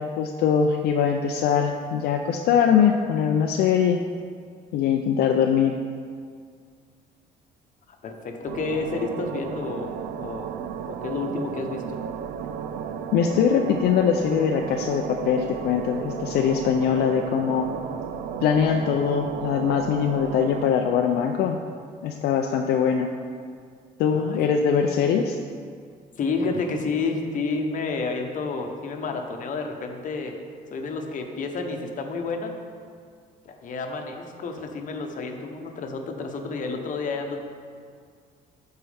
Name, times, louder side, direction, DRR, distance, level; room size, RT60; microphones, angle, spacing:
voice 1, 0.0-4.0 4.7-5.8 13.1-17.7 18.4-21.6 22.0-23.1 24.0-25.4, left 7 dB, 75° left, 3 dB, 0.5 m, -22 dB
voice 2, 8.0-9.9 10.2-10.5 10.9-12.0 24.1-24.4 26.2-30.4 30.7-32.5 33.4-37.5, left 4 dB, 50° left, 4 dB, 1.0 m, -30 dB
sound 1, 8.5-20.7, right 8 dB, 65° right, 0.4 m, -34 dB
12.0 x 4.5 x 3.4 m, 2.1 s
cardioid pair, 110°, 17 cm